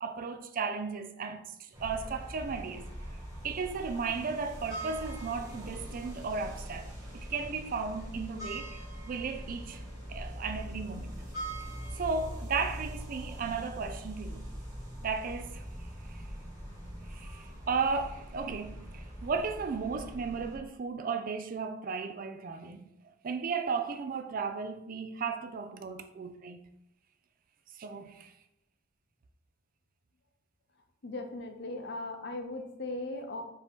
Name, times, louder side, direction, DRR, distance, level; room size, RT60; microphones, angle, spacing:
voice 1, 0.0-3.2 3.4-9.8 10.1-11.2 11.9-14.5 15.0-15.7 16.1-16.2 17.1-22.9 23.2-26.6 27.7-28.3, right 5 dB, 45° right, 0.4 m, -35 dB
sound 1, 1.7-20.6, right 1 dB, 20° right, 1.3 m, -42 dB
voice 2, 31.0-33.4, left 2 dB, 60° left, 0.6 m, -38 dB
5.0 x 2.8 x 3.5 m
head